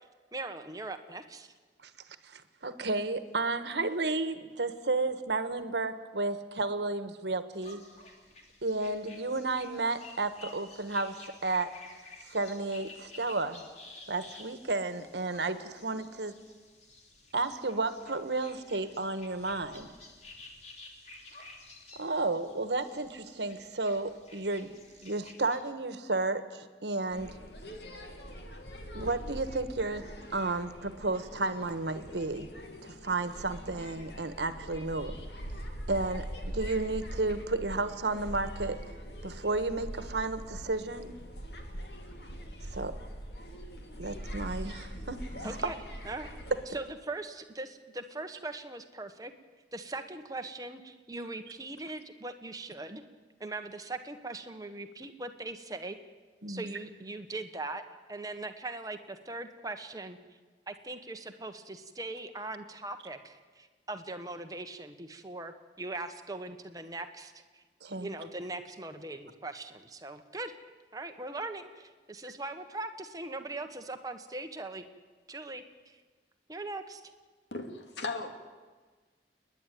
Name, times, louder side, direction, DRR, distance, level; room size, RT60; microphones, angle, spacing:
voice 1, 0.3-1.5 45.4-45.8 46.0-46.3 46.7-49.3 49.7-53.0 53.4-56.0 56.5-57.8 58.1-60.2 60.7-67.6 68.0-70.6 70.9-74.9 75.3-76.0 76.5-77.0, right 2 dB, 20° right, 7 dB, 1.3 m, -40 dB
voice 2, 2.2-7.8 8.6-11.7 12.3-13.6 14.1-16.3 17.3-19.9 21.9-24.7 25.0-27.3 28.9-30.0 30.3-32.5 32.8-35.1 35.9-36.3 36.5-38.8 39.2-41.2 42.7-43.0 44.0-45.2 45.6-45.7 56.4-56.7 67.8-68.1, right 3 dB, 80° right, 11 dB, 1.3 m, -32 dB
sound 1, 7.5-25.6, left 2 dB, 40° left, 2.8 m, -52 dB
sound 2, 27.1-46.7, equal, 75° left, 2.6 m, -43 dB
voice 3, 77.5-78.3, left 3 dB, 90° left, 5 dB, 2.3 m, -36 dB
29.5 x 10.5 x 9.3 m, 1.4 s
head